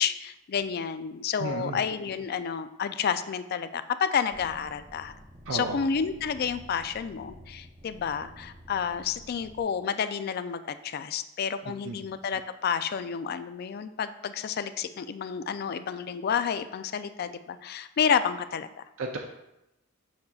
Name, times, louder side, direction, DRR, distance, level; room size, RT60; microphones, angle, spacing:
voice 1, 0.0-5.1 5.5-18.8, left 7 dB, 45° left, 12 dB, 0.3 m, -30 dB
voice 2, 1.4-1.8 5.5-5.8 11.8-12.0 19.0-19.2, right 3 dB, 70° right, 1 dB, 0.5 m, -33 dB
sound 1, 4.3-9.6, equal, 25° right, 0.8 m, -50 dB
7.1 x 6.3 x 2.3 m, 0.88 s
head